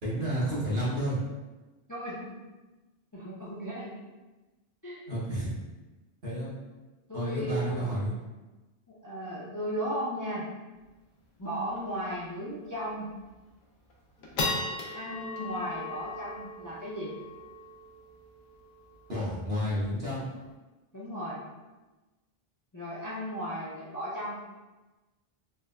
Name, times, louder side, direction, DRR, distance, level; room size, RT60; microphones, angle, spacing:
voice 1, 0.0-1.2 5.1-5.5 6.2-6.5 7.1-8.1 19.1-20.2, equal, 70° right, -7 dB, 1.3 m, -30 dB
voice 2, 1.9-2.4 3.1-3.9 4.8-5.0 7.1-7.9 8.9-10.5 11.4-13.1 14.9-17.1 20.9-21.4 22.7-24.4, equal, 30° left, -8 dB, 0.3 m, -35 dB
sound 1, 10.9-11.0 11.2-11.3 11.7-12.0 12.4-12.5 13.1-13.5 13.9-20.5, left 2 dB, 85° left, 0.8 m, -38 dB
3.9 x 2.2 x 2.2 m, 1.2 s
omnidirectional pair, 1.0 m